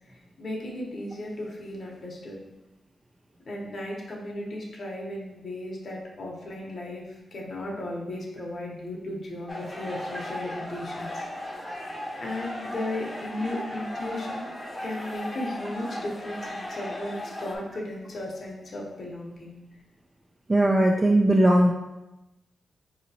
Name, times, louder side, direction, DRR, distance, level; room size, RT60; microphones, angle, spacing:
voice 1, 0.0-2.4 3.5-11.2 12.2-14.5 14.8-19.6, left 1 dB, 50° left, -3 dB, 0.9 m, -35 dB
sound 1, 9.5-17.6, left 1 dB, 15° left, 0.7 m, -36 dB
voice 2, 20.5-21.7, right 1 dB, 25° right, 0 dB, 0.3 m, -19 dB
4.9 x 2.8 x 2.7 m, 0.97 s
wide cardioid pair, 105°, 0 cm